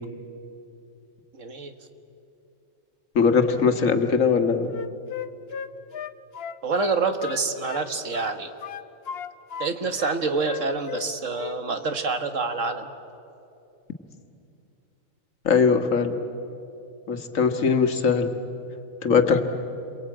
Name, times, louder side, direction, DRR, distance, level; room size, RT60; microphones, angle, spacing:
voice 1, 1.3-1.7 6.6-8.5 9.6-12.9, right 4 dB, 65° right, 7 dB, 1.9 m, -27 dB
voice 2, 3.2-4.7 15.5-16.2 17.1-18.3 19.0-19.4, left 5 dB, 75° left, 7 dB, 1.9 m, -20 dB
Wind instrument woodwind instrument, 4.7-7.8 8.1-9.7 10.0-11.1 11.3-11.6, left 7 dB, 55° left, 1.0 m, -36 dB
29.0 x 23.0 x 8.9 m, 2.7 s
omnidirectional pair, 1.4 m